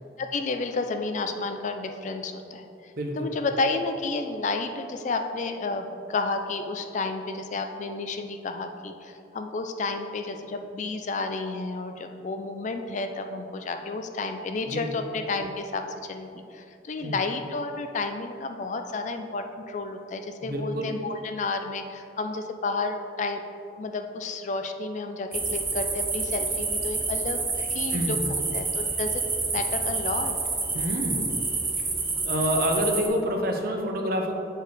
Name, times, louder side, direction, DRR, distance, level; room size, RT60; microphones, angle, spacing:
voice 1, 0.2-2.6 3.2-15.8 16.1-23.4 23.7-28.2 28.5-29.2 29.5-30.3, left 3 dB, 40° left, 6 dB, 0.4 m, -31 dB
voice 2, 3.0-3.3 14.7-14.9 17.0-17.2 20.4-20.9 27.9-28.3 30.7-31.2 32.2-34.3, equal, 55° right, 3 dB, 0.7 m, -27 dB
sound 1, 25.3-33.1, right 3 dB, 15° right, 0.5 m, -28 dB
7.9 x 4.5 x 3.4 m, 2.6 s
head